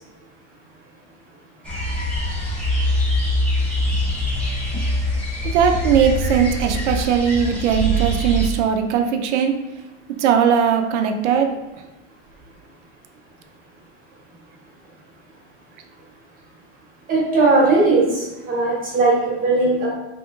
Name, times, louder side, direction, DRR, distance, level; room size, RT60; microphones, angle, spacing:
sound 1, 1.6-8.5, equal, 5° left, 0.9 m, -23 dB
voice 1, 5.5-9.5 10.2-11.5, right 7 dB, 80° right, 6 dB, 0.5 m, -19 dB
voice 2, 17.1-19.9, right 3 dB, 25° right, -4 dB, 1.1 m, -18 dB
3.3 x 2.9 x 2.3 m, 1.0 s
supercardioid pair, 130°, 35 cm